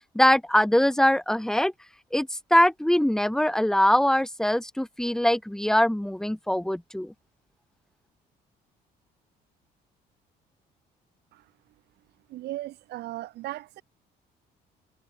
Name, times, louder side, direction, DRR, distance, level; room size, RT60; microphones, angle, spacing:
voice 1, 0.1-1.7 2.1-7.1, left 1 dB, 5° left, 1.3 m, -22 dB
voice 2, 12.3-13.8, right 16 dB, 80° right, 6.7 m, -37 dB
cardioid pair, 110°, 17 cm